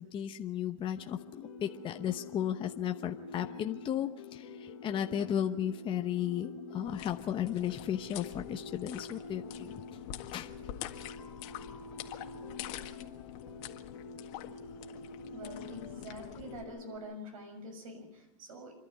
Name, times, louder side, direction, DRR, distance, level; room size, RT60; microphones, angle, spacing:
voice 1, 0.0-9.7 10.3-10.5 13.0-13.1 14.4-14.5, left 10 dB, 30° left, 6 dB, 0.9 m, -35 dB
sound 1, 1.0-17.0, left 4 dB, 75° left, 3.1 m, -47 dB
sound 2, 6.8-16.6, left 12 dB, 55° left, 1.9 m, -47 dB
voice 2, 15.3-18.7, equal, 75° right, 5 dB, 6.5 m, -46 dB
27.5 x 12.0 x 9.2 m, 0.97 s
hypercardioid pair, 115°, 18 cm